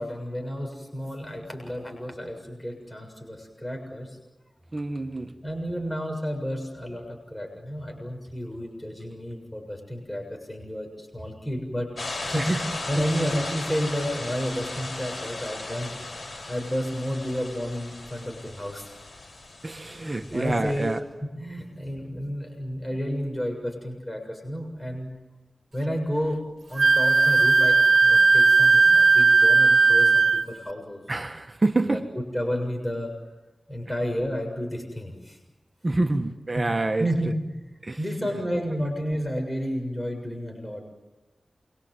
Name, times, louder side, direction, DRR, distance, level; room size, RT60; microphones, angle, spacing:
voice 1, 0.0-4.2 5.4-15.9 16.5-18.9 19.9-20.9 21.2-25.1 25.7-26.4 26.7-31.0 31.9-33.1 33.7-35.4 36.6-37.6 38.0-40.8, equal, 15° left, 7.1 m, -31 dB
voice 2, 4.7-5.4 12.4-12.6 19.6-21.0 31.1-32.0 35.8-37.1 37.8-38.0, right 2 dB, 40° right, 1.5 m, -26 dB
sound 1, 12.0-21.0, left 2 dB, 65° left, 7.0 m, -36 dB
Wind instrument woodwind instrument, 26.8-30.5, right 4 dB, 90° right, 1.1 m, -17 dB
29.0 x 24.5 x 8.0 m
wide cardioid pair, 55°, 0 cm